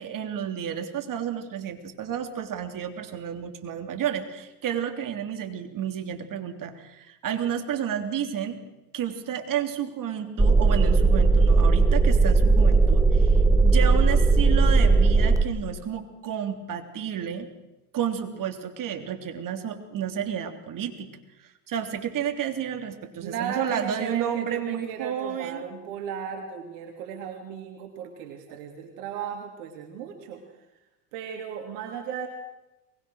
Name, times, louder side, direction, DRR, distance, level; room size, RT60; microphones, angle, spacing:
voice 1, 0.0-8.6 8.9-17.5 17.9-21.1 21.4-25.6 28.5-28.6, right 9 dB, 40° right, 6 dB, 3.4 m, -31 dB
sound 1, 10.4-15.4, right 3 dB, 5° right, 1.4 m, -18 dB
voice 2, 23.2-30.4 31.1-32.3, right 7 dB, 70° right, 2 dB, 3.2 m, -36 dB
23.0 x 21.0 x 6.5 m, 0.99 s
hypercardioid pair, 80°, 47 cm